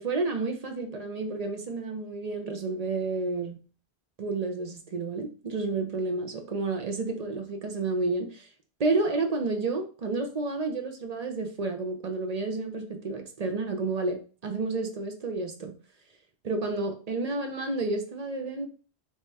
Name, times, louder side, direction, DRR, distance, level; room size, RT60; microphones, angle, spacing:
voice 1, 0.0-3.6 4.2-8.5 8.8-14.2 14.4-15.7 16.4-18.7, right 3 dB, 45° right, 5 dB, 0.6 m, -30 dB
3.1 x 2.9 x 3.4 m, 0.37 s
omnidirectional pair, 1.1 m